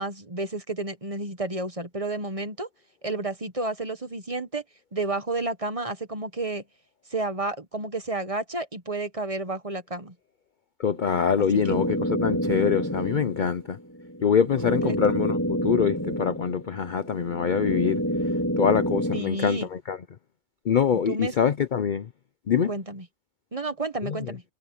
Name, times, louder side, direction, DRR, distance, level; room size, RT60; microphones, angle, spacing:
voice 1, 0.0-2.7 3.0-4.6 4.9-6.6 7.1-10.1 14.6-15.0 19.1-19.7 21.1-21.3 22.7-23.0 23.5-24.4, right 2 dB, 25° right, 1.3 m, -31 dB
voice 2, 10.8-13.8 14.2-18.0 18.6-20.0 20.7-22.1 22.5-22.7 24.0-24.2, left 7 dB, 50° left, 0.6 m, -24 dB
sound 1, 10.9-19.2, equal, 10° left, 3.2 m, -28 dB
omnidirectional pair, 1.4 m